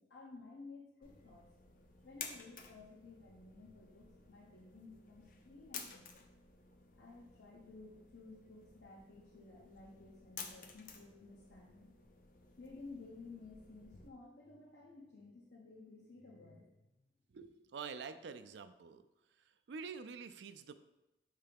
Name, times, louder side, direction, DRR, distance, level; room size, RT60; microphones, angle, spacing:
voice 1, 0.0-1.4 2.0-6.3 6.9-11.9 12.6-17.0, left 3 dB, 80° left, -3 dB, 0.9 m, -55 dB
sound 1, 1.0-14.1, left 5 dB, 50° left, 0.6 m, -54 dB
voice 2, 17.3-19.1 19.3-20.7, right 5 dB, 75° right, 10 dB, 0.4 m, -47 dB
5.6 x 3.3 x 5.1 m, 0.96 s
head